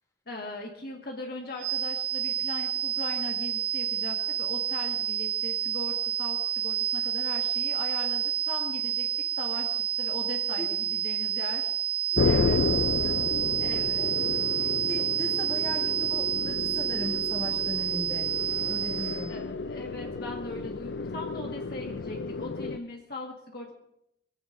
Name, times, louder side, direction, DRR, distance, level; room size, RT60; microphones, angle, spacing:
voice 1, 0.3-9.1 9.4-11.7 12.2-12.6 13.6-14.1 19.3-23.7, left 2 dB, 55° left, 0 dB, 1.7 m, -39 dB
sound 1, 1.6-19.3, right 10 dB, 50° right, 2.6 m, -29 dB
voice 2, 12.1-12.6 12.9-14.0 14.4-18.3 18.6-19.3, left 1 dB, 20° left, 0 dB, 2.8 m, -39 dB
sound 2, 12.2-22.8, left 4 dB, 75° left, 0.5 m, -31 dB
23.0 x 15.5 x 2.6 m, 0.80 s
head